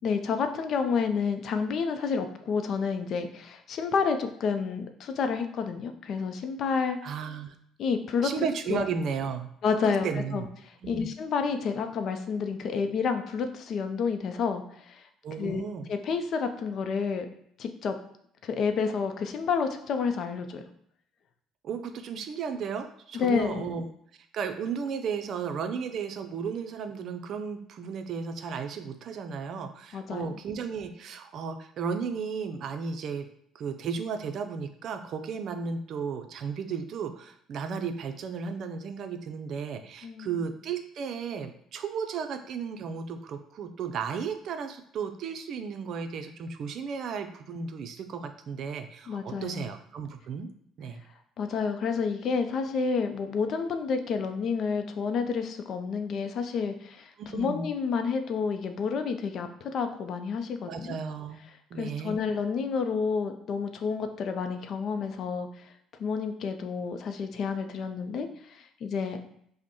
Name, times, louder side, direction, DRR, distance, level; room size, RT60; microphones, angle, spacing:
voice 1, 0.0-7.0 7.8-8.3 8.7-8.8 9.6-10.4 10.9-15.1 15.4-15.6 15.9-17.3 17.6-18.0 18.4-20.6 23.1-23.7 29.9-30.3 40.0-40.4 49.1-49.7 51.4-61.0 61.8-65.7 66.0-69.2, left 5 dB, 60° left, 7 dB, 0.5 m, -29 dB
voice 2, 7.0-7.5 8.2-9.5 9.9-10.5 10.8-11.1 15.2-15.9 21.6-23.8 24.3-33.3 33.5-50.5 50.8-51.0 57.2-57.7 60.6-61.4 61.7-62.2, right 6 dB, 60° right, 7 dB, 0.5 m, -34 dB
5.1 x 2.1 x 3.0 m, 0.69 s
supercardioid pair, 75°, 0 cm